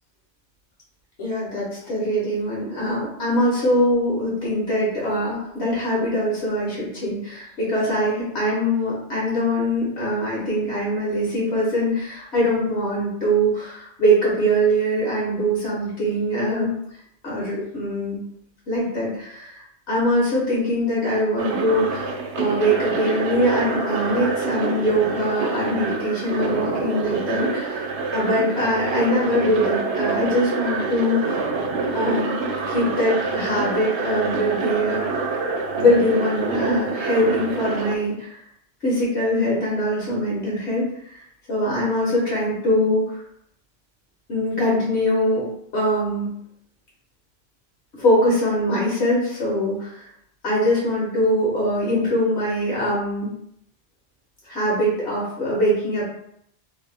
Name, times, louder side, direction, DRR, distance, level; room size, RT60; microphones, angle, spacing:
voice 1, 1.2-16.7 17.2-18.2 18.7-27.8 28.1-31.4 31.9-35.0 35.8-38.4 38.8-41.2 41.5-43.2 44.3-45.5 45.7-46.3 47.9-50.0 50.4-53.3 54.4-56.0, equal, 75° left, -6 dB, 1.4 m, -22 dB
sound 1, 21.4-38.0, right 4 dB, 80° right, 0.8 m, -27 dB
3.0 x 2.6 x 3.5 m, 0.71 s
omnidirectional pair, 1.1 m